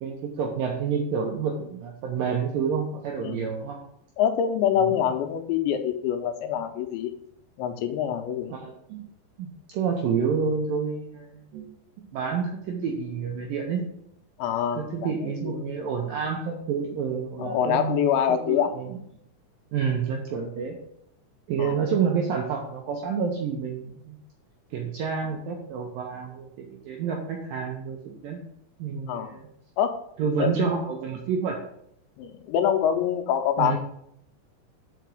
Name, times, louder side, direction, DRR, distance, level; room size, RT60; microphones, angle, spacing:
voice 1, 0.0-3.8 4.8-5.1 8.5-9.1 9.4-9.5 9.7-11.7 12.1-13.9 14.8-19.0 19.7-20.8 21.5-24.2 24.7-28.4 28.8-29.5 30.2-31.7 33.6-33.8, right 6 dB, 80° right, 0 dB, 2.0 m, -29 dB
voice 2, 4.2-7.1 7.6-8.6 14.4-15.6 17.4-18.7 21.6-21.8 29.1-29.3 29.8-30.0 30.4-30.5 32.2-33.8, left 9 dB, 90° left, 7 dB, 3.1 m, -25 dB
5.8 x 5.3 x 6.2 m, 0.72 s
omnidirectional pair, 5.1 m